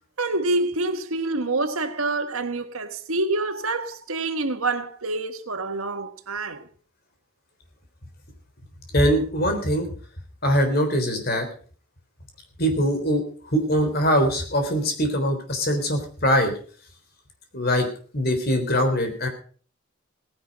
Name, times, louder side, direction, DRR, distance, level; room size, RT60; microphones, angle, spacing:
voice 1, 0.2-6.7, right 2 dB, 80° right, 1.6 m, -27 dB
voice 2, 8.9-9.9 10.4-11.5 12.6-16.5 17.5-17.9 18.1-19.3, equal, 45° left, 3.7 m, -22 dB
17.5 x 10.5 x 5.3 m
head